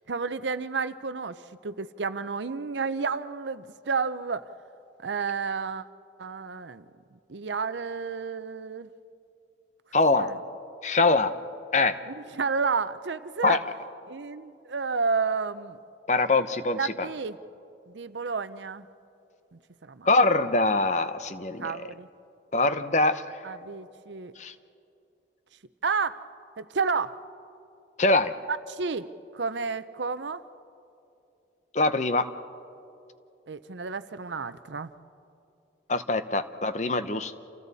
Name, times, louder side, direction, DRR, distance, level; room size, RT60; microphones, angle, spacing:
voice 1, 0.1-4.4 5.0-5.8 6.2-6.9 7.3-8.9 10.1-10.4 11.2-11.3 12.1-13.6 14.1-15.8 16.7-17.4 17.9-18.9 19.5-20.1 21.6-22.1 23.4-24.3 25.8-26.3 26.6-27.2 28.5-30.4 33.5-34.9, right 5 dB, 85° right, 13 dB, 0.7 m, -31 dB
voice 2, 9.9-10.3 10.8-11.3 11.7-12.0 13.4-13.6 16.1-17.1 20.1-21.7 22.5-23.2 24.4-24.5 28.0-28.3 31.7-32.3 35.9-37.4, left 3 dB, 40° left, 11 dB, 0.8 m, -23 dB
29.0 x 28.5 x 4.2 m, 2.7 s
head